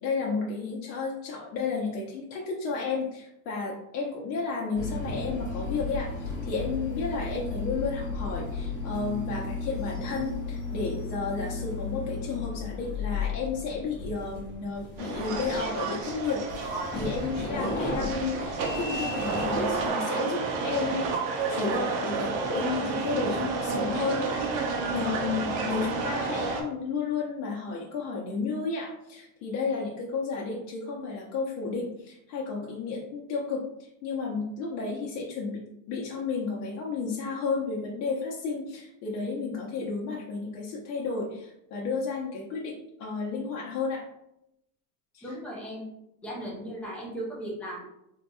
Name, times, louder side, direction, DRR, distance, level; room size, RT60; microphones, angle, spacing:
voice 1, 0.0-24.3 24.9-35.6 35.9-44.0 45.1-45.4, left 4 dB, 80° left, -3 dB, 0.9 m, -32 dB
sound 1, 4.7-19.9, left 3 dB, 25° left, 0.8 m, -35 dB
sound 2, 15.0-26.6, right 4 dB, 90° right, 0.8 m, -30 dB
voice 2, 45.2-45.9 46.2-47.8, right 1 dB, 5° left, -5 dB, 0.3 m, -36 dB
3.9 x 2.8 x 2.2 m, 0.81 s
cardioid pair, 155°, 48 cm